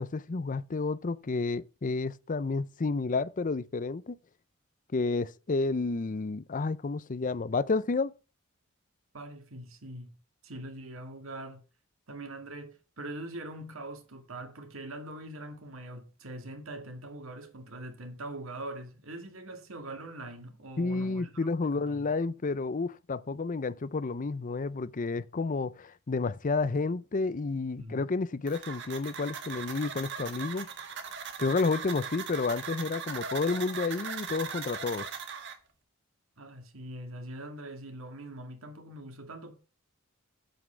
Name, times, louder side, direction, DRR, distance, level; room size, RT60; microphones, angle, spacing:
voice 1, 0.0-4.2 4.9-8.1 20.8-30.7 31.4-35.1, left 3 dB, 40° left, 0.5 m, -30 dB
voice 2, 9.1-10.2 10.4-11.6 12.1-22.1 27.8-28.0 36.4-39.5, right 1 dB, 85° right, 2.0 m, -43 dB
sound 1, 28.5-35.5, right 6 dB, 60° right, 1.6 m, -39 dB
8.3 x 7.8 x 4.9 m
head